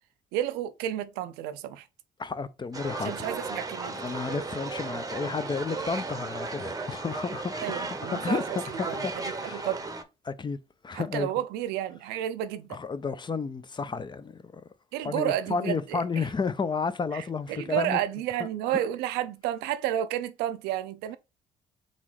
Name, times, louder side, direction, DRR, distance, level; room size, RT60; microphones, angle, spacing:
voice 1, 0.3-1.8 3.0-4.2 7.6-8.6 8.9-9.1 9.4-9.8 10.9-12.8 14.9-16.3 17.1-21.2, right 12 dB, 75° right, 0.5 m, -31 dB
voice 2, 2.2-3.3 3.9-7.7 8.1-9.1 9.4-9.7 10.2-10.6 10.8-11.3 12.7-14.6 15.0-18.0 18.4-18.8, left 5 dB, 25° left, 0.5 m, -32 dB
sound 1, 2.7-10.0, right 3 dB, 20° right, 0.8 m, -35 dB
4.0 x 3.6 x 3.1 m
hypercardioid pair, 55°, 17 cm